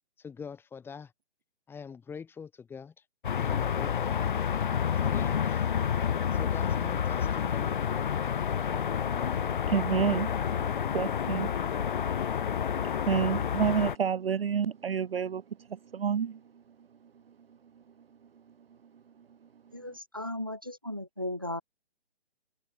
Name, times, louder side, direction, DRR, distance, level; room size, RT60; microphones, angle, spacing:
voice 1, 0.2-1.1 1.7-2.9 3.4-4.2 4.9-5.7 6.3-7.8, left 6 dB, 5° left, 5.4 m, -44 dB
sound 1, 3.2-14.0, left 8 dB, 50° left, 0.4 m, -29 dB
voice 2, 8.7-15.4 15.7-16.4, right 7 dB, 60° right, 1.2 m, -31 dB
voice 3, 19.7-21.6, left 1 dB, 20° right, 0.3 m, -36 dB
hypercardioid pair, 155°, 34 cm